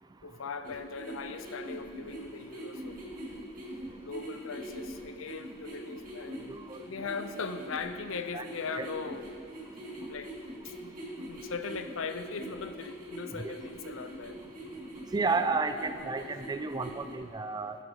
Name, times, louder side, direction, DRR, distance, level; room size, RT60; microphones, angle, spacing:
voice 1, 0.2-3.0 4.0-6.5 6.8-9.3 10.1-10.3 10.6-14.4, left 5 dB, 85° left, 10 dB, 0.6 m, -39 dB
sound 1, 0.6-17.1, right 1 dB, 45° right, 2.7 m, -43 dB
voice 2, 6.5-6.8 8.3-8.4 8.8-8.9 13.4-13.5 15.1-17.8, right 4 dB, 20° right, 10 dB, 0.4 m, -31 dB
14.5 x 9.9 x 3.9 m, 2.3 s
head